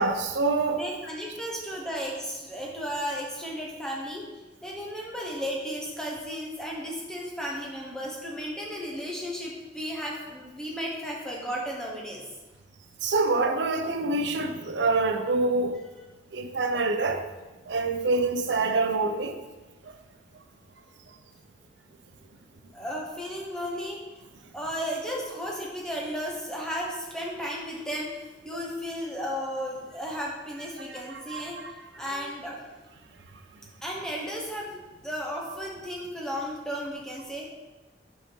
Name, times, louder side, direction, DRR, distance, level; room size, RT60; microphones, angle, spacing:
voice 1, 0.0-0.8 13.0-15.8 16.3-17.2 17.7-19.4 28.5-28.6 30.9-31.5, right 3 dB, 75° right, 6 dB, 0.6 m, -26 dB
voice 2, 0.8-4.3 4.6-12.2 22.7-24.0 24.5-31.6 32.0-32.6 33.8-37.5, equal, 5° left, -3 dB, 1.1 m, -34 dB
5.4 x 4.9 x 4.5 m, 1.2 s
head